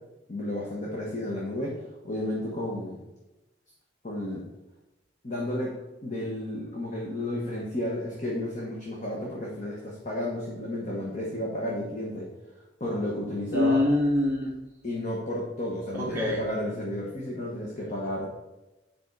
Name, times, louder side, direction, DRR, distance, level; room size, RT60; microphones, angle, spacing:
voice 1, 0.3-1.8 2.0-3.0 4.0-4.4 5.2-5.7 6.0-12.3 12.8-13.8 14.8-18.3, left 1 dB, 40° left, -3 dB, 1.3 m, -32 dB
voice 2, 13.5-14.5 15.9-16.4, left 1 dB, 10° right, -5 dB, 1.0 m, -24 dB
8.1 x 5.4 x 4.7 m, 1.0 s
head